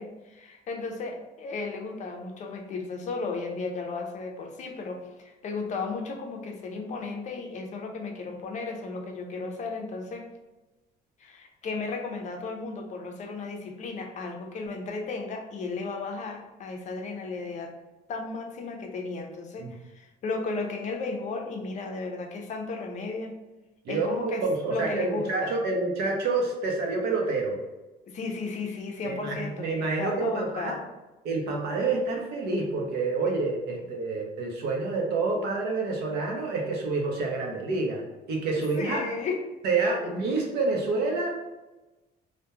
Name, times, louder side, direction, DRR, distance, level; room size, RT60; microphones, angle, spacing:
voice 1, 0.0-10.3 11.2-17.7 18.1-23.4 23.9-25.6 28.1-30.9 38.5-39.4 40.0-40.1, left 3 dB, 45° left, 3 dB, 0.4 m, -34 dB
voice 2, 23.8-27.6 29.0-30.7 31.2-38.0 38.3-39.0 39.6-41.3, right 3 dB, 75° right, 0 dB, 0.6 m, -28 dB
2.2 x 2.1 x 2.9 m, 1.1 s
cardioid pair, 110°, 17 cm